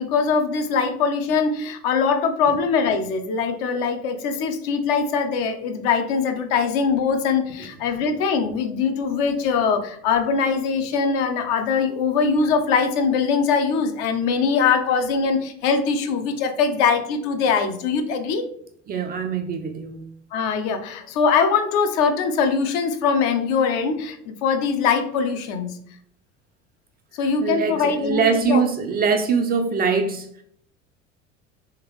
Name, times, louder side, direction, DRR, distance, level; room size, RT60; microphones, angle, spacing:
voice 1, 0.0-18.5 20.3-25.8 27.1-28.6, left 5 dB, 55° left, 0.6 m, -22 dB
voice 2, 18.9-20.0 27.4-30.4, right 5 dB, 25° right, 0.4 m, -23 dB
3.6 x 3.0 x 3.0 m
figure-of-eight pair, 65°, 38 cm